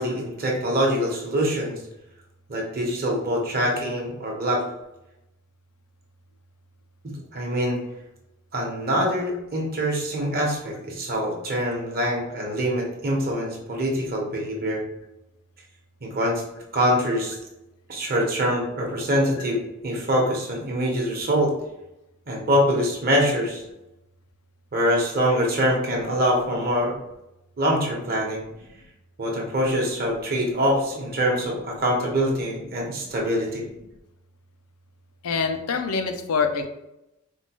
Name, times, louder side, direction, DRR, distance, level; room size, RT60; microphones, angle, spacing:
voice 1, 0.0-1.8 2.5-4.6 7.3-7.8 8.5-14.8 16.0-16.4 16.7-17.4 17.9-21.5 22.3-23.6 24.7-26.9 27.6-28.4 29.2-33.6, equal, 45° right, -1 dB, 0.9 m, -24 dB
voice 2, 35.2-36.7, left 5 dB, 75° left, 6 dB, 0.5 m, -25 dB
4.4 x 2.2 x 2.9 m, 0.89 s
head